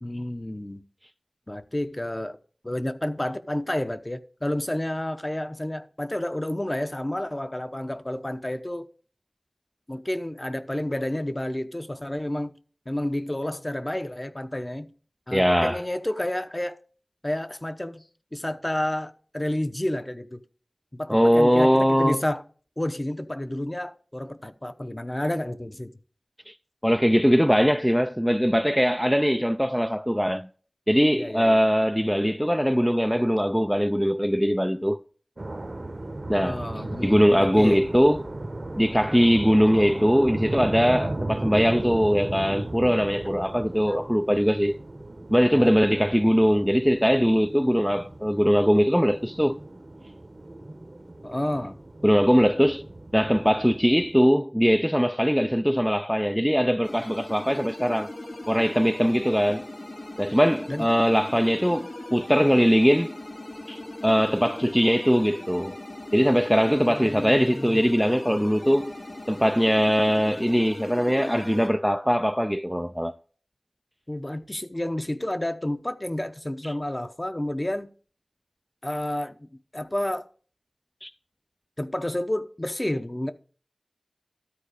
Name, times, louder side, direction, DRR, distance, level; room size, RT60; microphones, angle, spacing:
voice 1, 0.0-0.8 1.5-2.4 2.6-8.9 9.9-12.6 12.9-14.9 15.3-16.8 17.2-18.0 18.3-20.4 20.9-22.4 22.8-25.9 31.1-31.6 36.4-37.8 43.9-44.0 45.4-45.8 51.2-51.8 60.7-60.9 66.7-67.8 74.1-77.9 78.8-80.2 81.8-83.3, left 1 dB, 30° left, 0.8 m, -30 dB
voice 2, 15.3-15.8 21.1-22.2 26.5-26.6 26.8-30.5 30.9-35.0 36.3-36.6 37.0-38.2 38.8-44.8 45.3-49.6 52.0-52.8 53.1-58.1 58.5-59.7 60.2-63.1 63.7-65.8 66.1-68.9 69.3-73.1 76.6-76.7 81.0-81.1, equal, ahead, 0.4 m, -21 dB
sound 1, 35.4-54.2, right 2 dB, 55° right, 0.9 m, -36 dB
sound 2, 56.8-71.7, left 1 dB, 80° left, 3.0 m, -39 dB
13.0 x 4.4 x 4.9 m
wide cardioid pair, 40°, 0 cm